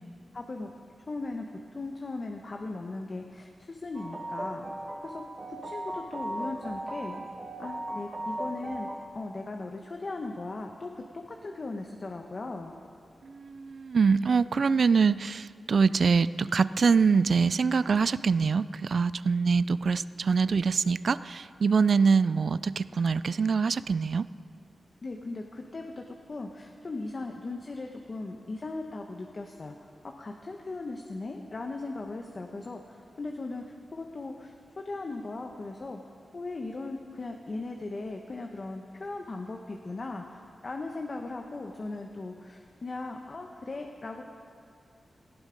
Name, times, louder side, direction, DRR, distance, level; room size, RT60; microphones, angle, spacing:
voice 1, 0.3-0.7 1.0-5.2 5.5-7.2 7.6-12.7 25.0-29.9 30.2-34.5 34.8-36.0 36.3-44.2, left 3 dB, 40° left, 3 dB, 1.0 m, -38 dB
sound 1, 3.9-9.0, right 1 dB, 35° right, 1.7 m, -37 dB
voice 2, 13.2-24.3, right 5 dB, 60° right, 16 dB, 0.3 m, -24 dB
18.0 x 15.5 x 5.1 m, 2.3 s
wide cardioid pair, 115°, 0 cm